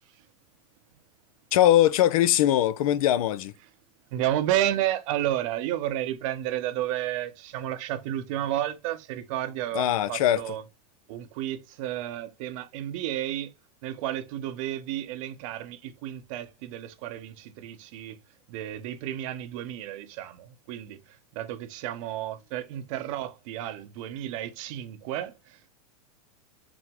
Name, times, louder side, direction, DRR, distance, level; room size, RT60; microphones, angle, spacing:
voice 1, 1.5-3.5 9.7-10.4, left 12 dB, 65° left, 0.5 m, -21 dB
voice 2, 4.1-10.6 11.1-13.5 13.8-18.2 18.5-25.7, right 12 dB, 60° right, 0.8 m, -32 dB
6.0 x 2.1 x 3.5 m
hypercardioid pair, 115°, 19 cm